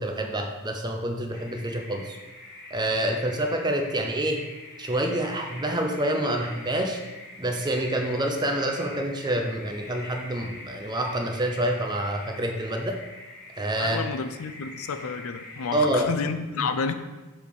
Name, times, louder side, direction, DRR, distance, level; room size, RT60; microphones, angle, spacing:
voice 1, 0.0-2.2 2.7-4.4 4.8-7.0 7.4-13.0 13.6-14.0 15.7-16.1 16.6-16.7, right 1 dB, 20° right, 3 dB, 0.6 m, -27 dB
sound 1, 1.3-16.0, left 2 dB, 45° left, 1.4 m, -44 dB
voice 2, 13.8-16.9, left 5 dB, 70° left, 9 dB, 0.4 m, -30 dB
7.2 x 3.5 x 4.7 m, 1.2 s
head